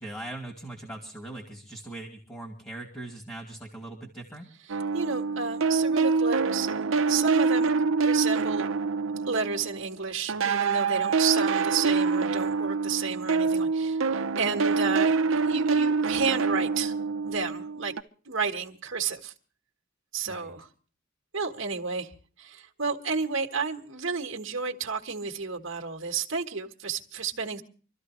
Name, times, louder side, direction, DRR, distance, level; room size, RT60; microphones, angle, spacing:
voice 1, 0.0-4.5 20.2-20.5, right 2 dB, 15° left, 0 dB, 2.6 m, -40 dB
sound 1, 4.7-9.9 10.3-18.0, right 4 dB, 85° right, 0.8 m, -26 dB
voice 2, 4.9-6.7 7.1-8.7 9.3-15.1 15.4-16.9 17.2-17.9 18.2-19.3 20.1-20.7 21.3-27.6, right 5 dB, 70° right, 2 dB, 1.4 m, -31 dB
25.5 x 13.5 x 3.1 m, 0.40 s
head